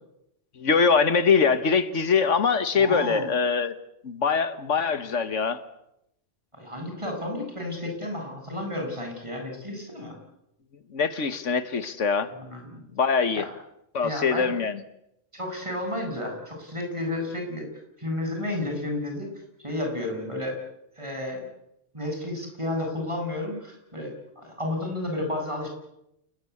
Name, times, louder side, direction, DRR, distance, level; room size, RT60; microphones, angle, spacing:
voice 1, 0.6-3.8 4.0-5.6 10.9-12.3 12.9-13.4 13.9-14.8, left 5 dB, 80° left, 12 dB, 1.7 m, -23 dB
voice 2, 2.8-3.3 6.5-10.2 12.3-12.8 13.3-13.5 14.0-14.5 15.3-17.7 18.0-19.3 19.6-20.6 21.0-21.5 21.9-25.7, left 1 dB, 25° right, 2 dB, 8.2 m, -32 dB
28.5 x 20.0 x 8.5 m, 0.82 s
omnidirectional pair, 1.2 m